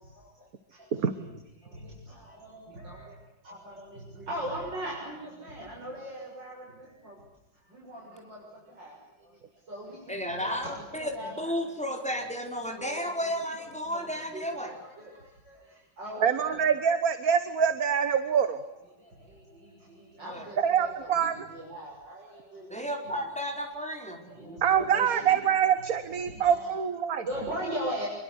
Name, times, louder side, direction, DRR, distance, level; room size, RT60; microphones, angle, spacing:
voice 1, 0.0-1.3 1.6-3.1 3.4-7.2 7.5-9.4 9.7-11.5 11.9-13.3 13.6-16.7 19.0-23.3 23.7-23.8 24.3-26.0 26.3-26.7 27.1-28.1, right 1 dB, 70° right, -3 dB, 7.6 m, -41 dB
voice 2, 10.1-14.7 20.2-20.5 22.7-24.2, equal, 5° left, 3 dB, 5.0 m, -33 dB
voice 3, 16.2-18.6 20.6-21.5 24.6-27.2, right 8 dB, 50° right, 11 dB, 1.7 m, -25 dB
27.5 x 23.5 x 8.2 m, 0.91 s
omnidirectional pair, 2.1 m